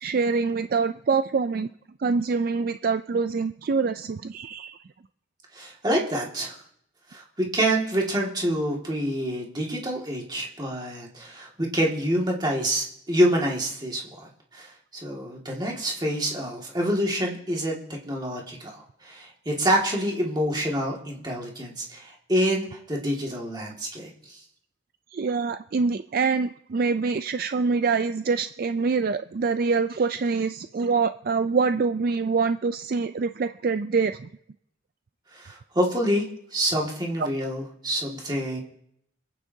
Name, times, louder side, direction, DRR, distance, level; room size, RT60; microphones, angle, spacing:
voice 1, 0.0-1.7 2.0-4.8 25.1-34.3 37.2-37.3, right 4 dB, 45° right, 10 dB, 0.3 m, -25 dB
voice 2, 5.5-6.6 7.1-14.0 14.5-14.7 15.0-24.4 35.3-36.2 36.5-38.6, equal, 20° right, -2 dB, 2.0 m, -27 dB
27.0 x 9.1 x 2.7 m, 0.74 s
head